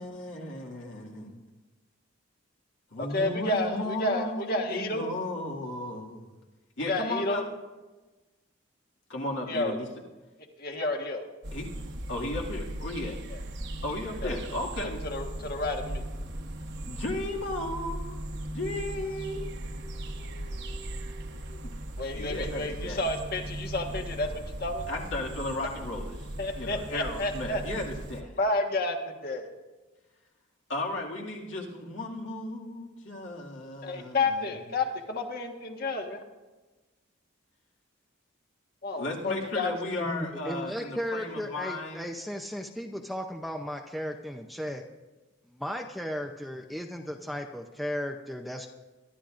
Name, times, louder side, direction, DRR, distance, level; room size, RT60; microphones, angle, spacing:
voice 1, 0.0-1.3 2.9-6.3 6.8-7.4 9.1-9.9 11.5-11.7 12.1-13.2 13.8-15.0 16.9-18.2 18.5-21.7 22.2-23.0 24.9-26.3 26.6-28.3 30.7-34.5 39.0-42.0, left 2 dB, 65° left, -2 dB, 2.1 m, -35 dB
voice 2, 3.0-5.1 6.8-7.5 9.5-9.8 10.6-11.2 13.3-13.4 14.2-14.3 14.8-16.0 22.0-24.9 26.4-27.6 28.4-29.5 33.8-36.2 38.8-39.7, left 2 dB, 45° left, 3 dB, 1.4 m, -30 dB
sound 1, 11.4-28.2, right 1 dB, 55° right, 1.1 m, -38 dB
voice 3, 40.0-44.8 45.5-48.7, equal, ahead, 4 dB, 0.5 m, -35 dB
23.0 x 12.0 x 2.5 m, 1.2 s
head